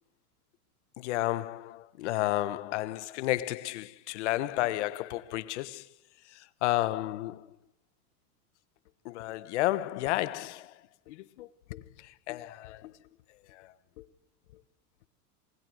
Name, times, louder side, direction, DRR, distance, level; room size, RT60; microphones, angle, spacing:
voice 1, 1.0-5.8 6.6-7.5 9.0-10.7 11.1-12.9 13.5-14.0, left 16 dB, 45° left, 1.3 m, -32 dB
28.0 x 20.5 x 7.9 m
supercardioid pair, 180°, 47 cm